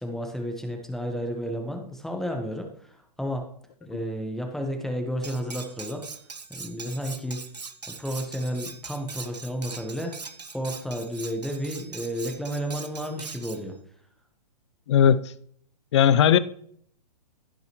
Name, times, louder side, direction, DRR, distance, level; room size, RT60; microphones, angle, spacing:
voice 1, 0.0-3.5 3.8-6.1 6.5-7.4 7.9-10.2 10.5-13.8, equal, ahead, 1.1 m, -32 dB
Cutlery silverware, 5.2-13.6, right 4 dB, 80° right, 0.9 m, -41 dB
voice 2, 14.9-15.3 15.9-16.4, left 9 dB, 45° left, 0.6 m, -18 dB
16.0 x 5.4 x 3.0 m
figure-of-eight pair, 120°, 21 cm